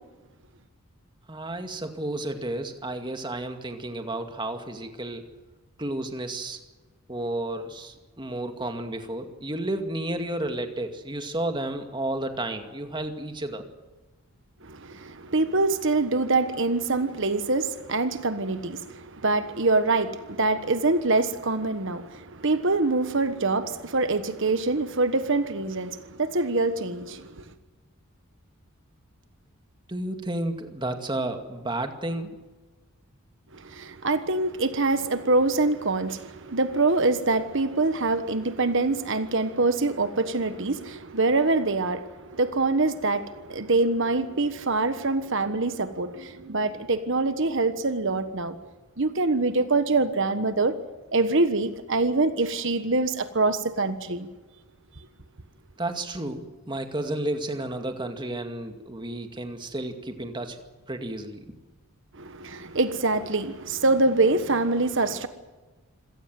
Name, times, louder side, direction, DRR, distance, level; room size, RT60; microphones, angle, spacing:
voice 1, 1.3-5.3 5.8-6.6 7.1-13.7 29.9-32.3 55.8-60.6 60.9-61.5, right 1 dB, 20° right, 2.2 m, -32 dB
voice 2, 14.6-27.5 33.5-48.6 49.0-50.8 51.1-54.3 62.1-65.3, right 3 dB, 55° right, 1.3 m, -25 dB
27.0 x 17.5 x 7.7 m
head